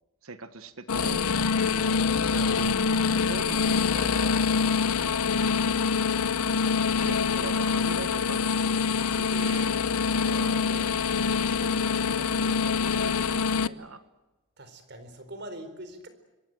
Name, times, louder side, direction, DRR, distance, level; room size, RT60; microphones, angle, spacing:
voice 1, 0.2-1.3 2.3-2.7 3.2-5.3 7.0-11.0 11.4-14.0, right 3 dB, 75° right, 10 dB, 1.4 m, -42 dB
sound 1, 0.9-13.7, left 5 dB, 90° left, 0.8 m, -25 dB
voice 2, 1.7-2.0 14.6-16.1, right 1 dB, 50° right, 10 dB, 4.2 m, -43 dB
26.5 x 24.0 x 7.8 m, 1.1 s
head